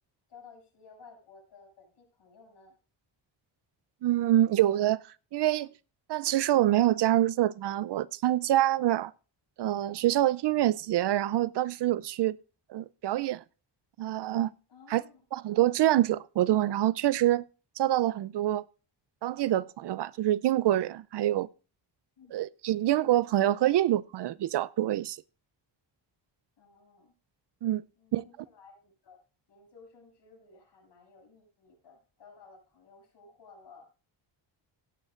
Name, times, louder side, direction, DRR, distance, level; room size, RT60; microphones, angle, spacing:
voice 1, 0.3-2.8 14.7-15.2 22.2-22.5 26.6-27.1 28.0-29.2 29.5-33.9, left 4 dB, 65° left, 7.1 m, -55 dB
voice 2, 4.0-5.0 5.3-5.7 6.1-9.1 9.6-12.4 12.7-13.4 14.0-14.5 14.9-15.0 15.3-17.4 17.8-18.6 19.2-21.5 22.3-25.2 27.6-27.8 28.1-28.2, right 13 dB, 65° right, 0.5 m, -26 dB
17.0 x 10.5 x 2.5 m
wide cardioid pair, 140°, 45 cm